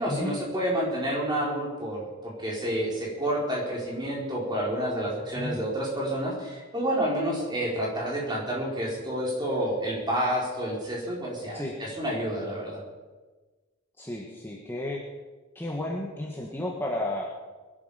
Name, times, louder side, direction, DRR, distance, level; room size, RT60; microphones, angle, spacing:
voice 1, 0.0-12.8, right 1 dB, 20° right, -4 dB, 4.8 m, -29 dB
voice 2, 14.0-15.0 15.5-17.2, left 1 dB, 10° left, -3 dB, 1.6 m, -32 dB
21.0 x 11.5 x 5.2 m, 1.3 s
head